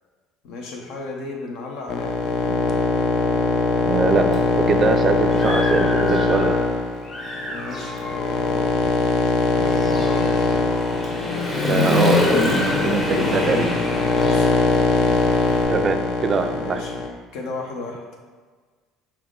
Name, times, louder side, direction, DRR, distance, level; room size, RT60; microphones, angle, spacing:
voice 1, 0.4-2.6 7.5-8.7 9.4-10.3 14.2-14.5 16.6-17.0 17.3-18.0, left 3 dB, 75° left, 0 dB, 0.8 m, -34 dB
sound 1, 1.9-17.1, left 3 dB, 55° left, 0.4 m, -22 dB
voice 2, 3.9-6.6 11.6-12.6 12.8-13.8 15.7-16.8, right 4 dB, 40° right, 7 dB, 0.3 m, -23 dB
Human voice / Motorcycle, 4.3-4.4 4.9-6.7 7.0-15.6, left 2 dB, 35° left, 1.0 m, -26 dB
5.8 x 2.1 x 3.7 m, 1.4 s
supercardioid pair, 95°, 0 cm